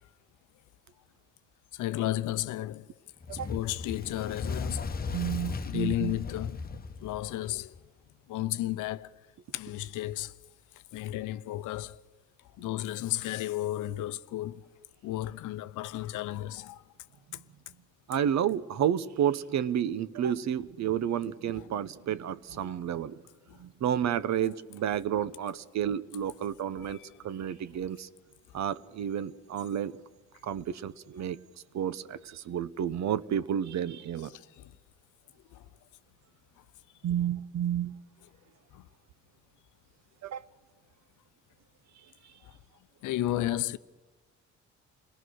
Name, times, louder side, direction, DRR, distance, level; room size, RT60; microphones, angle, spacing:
voice 1, 1.7-2.9 3.5-5.0 5.6-6.7 7.0-7.7 8.3-9.1 9.5-10.3 10.9-12.0 12.6-14.7 15.0-16.8 21.6-21.7 23.5-23.6 26.8-27.1 34.6-34.7 35.5-35.6 38.7-38.8 43.0-43.8, left 14 dB, 85° left, 0.7 m, -33 dB
Fire, 3.2-7.8, left 4 dB, 30° left, 1.0 m, -37 dB
voice 2, 5.1-6.2 18.1-23.2 23.6-27.0 27.2-28.1 28.5-30.0 30.4-31.4 31.7-34.3 37.0-38.0 40.2-40.4, right 9 dB, 65° right, 0.9 m, -31 dB
28.0 x 18.5 x 6.3 m
cardioid pair, 90°, 30 cm